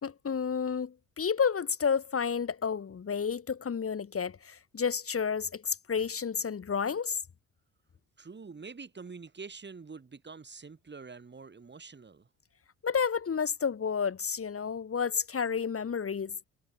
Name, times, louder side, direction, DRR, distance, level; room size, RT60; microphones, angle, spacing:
voice 1, 0.0-7.2 12.8-16.5, left 6 dB, 40° left, 3.7 m, -31 dB
voice 2, 8.2-12.3, right 4 dB, 30° right, 6.6 m, -46 dB
supercardioid pair, 75°, 35 cm